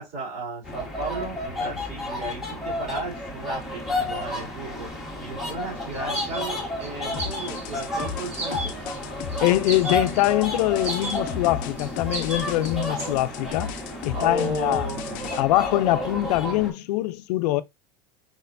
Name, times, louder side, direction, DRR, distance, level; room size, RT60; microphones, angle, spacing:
voice 1, 0.0-4.9 5.2-8.7 14.1-15.3, right 2 dB, 50° right, 2.9 m, -34 dB
sound 1, 0.6-16.7, left 1 dB, ahead, 1.6 m, -32 dB
sound 2, 5.9-6.9 7.2-7.7 8.3-9.0 9.3-9.4 9.7-10.3 10.8-11.2 11.8-13.1, right 2 dB, 30° right, 1.4 m, -34 dB
sound 3, 7.1-15.4, left 8 dB, 40° left, 0.6 m, -35 dB
voice 2, 9.4-13.7 14.1-14.9 15.4-17.6, left 16 dB, 85° left, 0.5 m, -23 dB
4.9 x 4.2 x 2.6 m
supercardioid pair, 160°, 20 cm